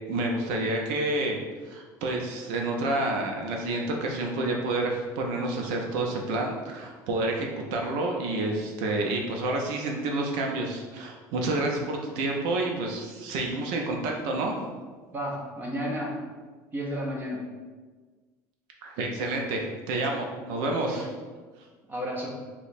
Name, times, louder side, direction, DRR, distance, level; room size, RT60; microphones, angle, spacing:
voice 1, 0.1-1.4 1.6-14.6 18.8-19.6 19.9-21.1, right 2 dB, 75° right, 1 dB, 0.6 m, -29 dB
voice 2, 15.1-16.1 16.7-17.4 20.8-21.1 21.9-22.4, equal, 25° right, -1 dB, 0.6 m, -32 dB
2.9 x 2.2 x 4.1 m, 1.4 s
cardioid pair, 135°, 8 cm